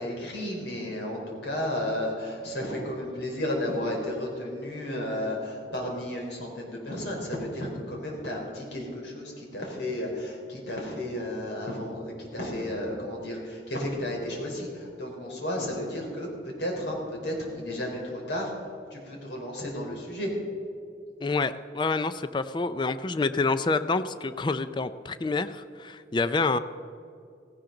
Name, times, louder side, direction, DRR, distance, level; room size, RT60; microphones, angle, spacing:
voice 1, 0.0-16.3 16.6-18.5 18.9-20.3, left 1 dB, 85° left, -1 dB, 4.0 m, -33 dB
voice 2, 21.2-26.6, left 3 dB, 25° left, 13 dB, 0.4 m, -27 dB
16.5 x 16.5 x 3.9 m, 2.4 s
head